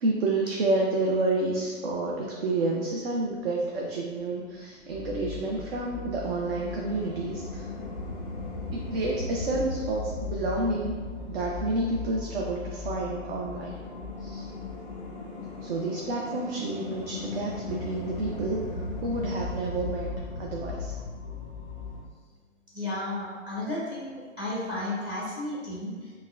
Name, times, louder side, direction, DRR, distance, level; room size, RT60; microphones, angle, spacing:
voice 1, 0.0-7.7 8.7-10.9 11.3-13.7 14.2-14.5 15.6-20.1 20.4-20.9, right 2 dB, 50° right, -2 dB, 0.5 m, -29 dB
sound 1, 4.9-22.0, left 3 dB, 20° left, 0.5 m, -37 dB
voice 2, 22.7-26.1, left 1 dB, 10° right, -7 dB, 0.8 m, -33 dB
5.4 x 2.2 x 2.4 m, 1.5 s
hypercardioid pair, 130°, 38 cm